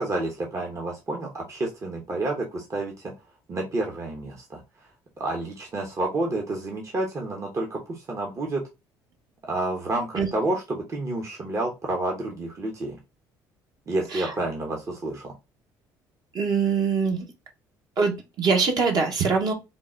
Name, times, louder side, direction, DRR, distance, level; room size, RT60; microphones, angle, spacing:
voice 1, 0.0-3.1 3.5-4.6 5.2-8.6 9.4-13.0 13.9-15.3, right 2 dB, 40° right, 0 dB, 1.0 m, -29 dB
voice 2, 16.3-17.3 18.0-19.5, right 5 dB, 55° right, 2 dB, 1.3 m, -23 dB
3.8 x 2.4 x 3.8 m, 0.26 s
supercardioid pair, 90°, 8 cm